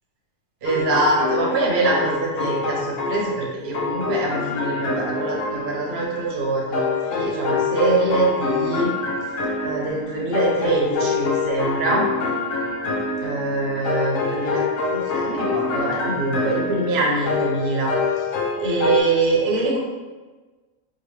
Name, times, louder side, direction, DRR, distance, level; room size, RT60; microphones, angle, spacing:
sound 1, 0.6-3.4 3.7-19.0, left 4 dB, 85° left, 1.0 m, -26 dB
voice 1, 0.6-8.9 9.6-12.1 13.2-17.9 18.6-19.8, right 2 dB, 55° right, -3 dB, 0.9 m, -24 dB
3.8 x 2.3 x 3.1 m, 1.3 s
omnidirectional pair, 1.4 m